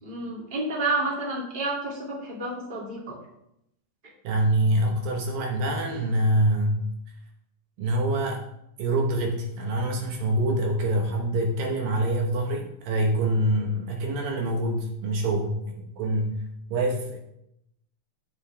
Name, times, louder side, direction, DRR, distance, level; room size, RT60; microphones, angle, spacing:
voice 1, 0.0-3.1, right 2 dB, 15° right, -5 dB, 2.3 m, -30 dB
voice 2, 4.2-6.9 7.8-8.5 8.8-16.4 16.7-17.2, right 1 dB, 70° right, 1 dB, 2.7 m, -25 dB
12.0 x 7.2 x 3.5 m, 0.79 s
omnidirectional pair, 4.3 m